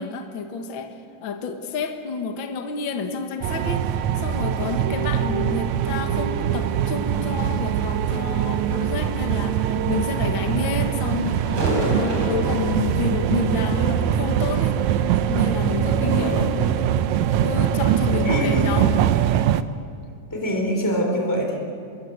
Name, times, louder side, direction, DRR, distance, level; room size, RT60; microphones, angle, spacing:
voice 1, 0.0-14.8 15.3-16.5 17.4-19.0, left 5 dB, 45° left, 5 dB, 2.0 m, -29 dB
sound 1, 3.4-19.6, right 10 dB, 75° right, 2.0 m, -22 dB
sound 2, 10.8-17.4 17.7-17.9 18.6-18.8, equal, 40° right, 5.6 m, -32 dB
voice 2, 16.0-16.8 18.1-18.7 20.3-21.6, equal, 5° left, 1 dB, 3.8 m, -25 dB
26.0 x 22.0 x 8.2 m, 2.4 s
omnidirectional pair, 3.6 m